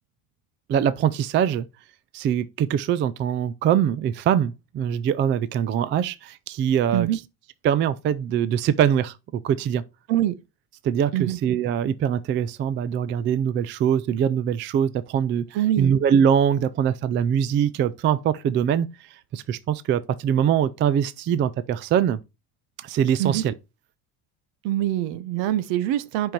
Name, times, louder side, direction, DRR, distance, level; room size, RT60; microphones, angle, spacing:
voice 1, 0.7-1.7 2.1-7.1 7.6-9.8 10.8-15.4 15.8-18.9 19.3-22.2 22.8-23.5, right 8 dB, 25° right, 0.3 m, -23 dB
voice 2, 15.5-15.9 23.2-23.4 24.6-26.3, right 13 dB, 60° right, 1.1 m, -24 dB
7.5 x 5.4 x 4.4 m
cardioid pair, 135°, 48 cm